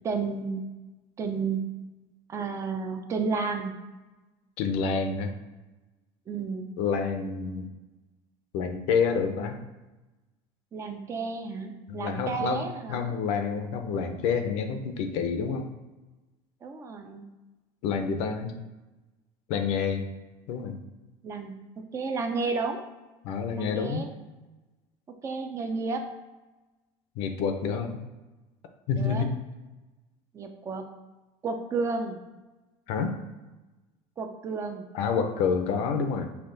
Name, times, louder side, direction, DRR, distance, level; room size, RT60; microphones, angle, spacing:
voice 1, 0.0-0.7 1.2-1.8 2.3-3.7 6.3-6.7 10.7-13.1 16.6-17.3 21.2-22.8 23.5-24.1 25.2-26.1 29.0-29.3 30.3-30.8 31.4-32.2 34.2-34.9, right 4 dB, 25° right, 5 dB, 0.5 m, -32 dB
voice 2, 4.6-5.3 6.8-7.7 8.5-9.6 11.9-15.7 17.8-18.6 19.5-20.1 20.5-20.8 23.2-24.1 27.2-28.0 28.9-29.3 32.9-33.2 34.9-36.2, left 6 dB, 65° left, 6 dB, 0.6 m, -28 dB
5.6 x 2.4 x 3.9 m, 1.1 s
cardioid pair, 145°, 11 cm